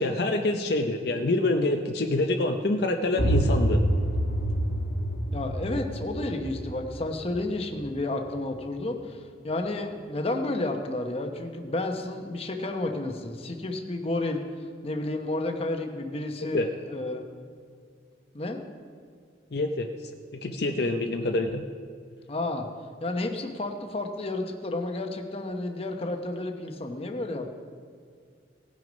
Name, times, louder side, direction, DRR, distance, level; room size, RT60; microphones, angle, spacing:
voice 1, 0.0-3.8 16.5-16.7 19.5-19.9 20.3-21.6, left 2 dB, 60° left, 4 dB, 0.6 m, -26 dB
sound 1, 3.2-8.8, right 1 dB, 75° left, 1.3 m, -28 dB
voice 2, 5.3-14.4 14.8-17.2 18.3-18.6 22.3-22.7 23.0-27.5, left 2 dB, 35° left, 4 dB, 0.9 m, -31 dB
17.5 x 6.3 x 5.2 m, 2.1 s
head